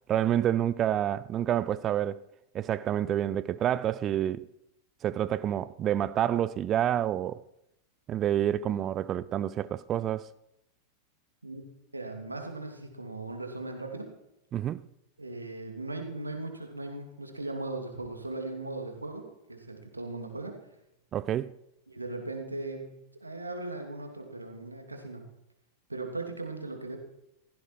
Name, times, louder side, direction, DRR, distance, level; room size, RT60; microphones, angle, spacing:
voice 1, 0.1-2.2 2.5-4.5 5.0-7.4 8.1-10.3 14.5-14.8 21.1-21.5, right 11 dB, 30° right, 0.6 m, -28 dB
voice 2, 11.9-14.1 15.2-20.6 21.9-25.3 25.9-27.0, right 2 dB, 80° right, 2.9 m, -38 dB
16.5 x 15.0 x 4.7 m
figure-of-eight pair, 90°, 0 cm